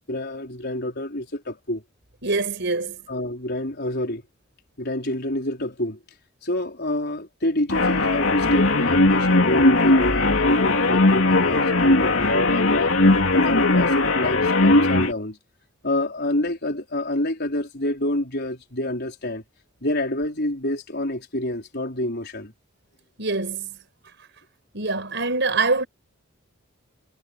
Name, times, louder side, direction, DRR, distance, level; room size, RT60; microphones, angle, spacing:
voice 1, 0.1-1.8 3.1-4.2 4.8-6.0 6.4-12.9 13.3-15.4 15.8-19.4 19.8-22.5, left 1 dB, 55° left, 4.9 m, -28 dB
voice 2, 2.2-3.0 23.2-23.8 24.7-25.9, right 3 dB, 60° right, 6.0 m, -24 dB
sound 1, 7.7-15.1, left 2 dB, 70° left, 3.1 m, -18 dB
head